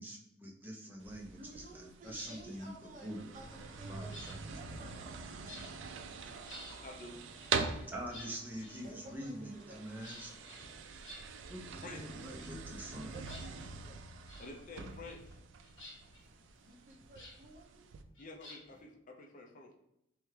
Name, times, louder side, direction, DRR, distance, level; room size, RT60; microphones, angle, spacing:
voice 1, 0.0-3.4 3.6-4.8 7.9-10.3 11.5-13.1, right 1 dB, 10° right, -2 dB, 0.7 m, -45 dB
sound 1, 1.0-18.0, right 5 dB, 75° right, 0.4 m, -44 dB
voice 2, 1.3-5.2 8.8-9.8 13.1-14.0 16.6-17.9, right 2 dB, 40° right, -1 dB, 0.7 m, -54 dB
sound 2, 2.0-2.4 3.4-5.2 5.5-5.9 6.3-6.8 7.4-9.3 10.0-11.7 12.0-12.9 13.2-13.9 14.3-14.5 14.8-15.3 15.6-17.4 18.1-18.8, left 1 dB, 70° left, 1.3 m, -53 dB
sound 3, 3.4-10.8, equal, 15° left, 1.1 m, -60 dB
voice 3, 6.8-7.2 11.8-12.0 14.4-15.4 18.2-19.8, left 2 dB, 45° left, 2 dB, 0.5 m, -49 dB
3.5 x 3.3 x 3.2 m, 0.81 s
head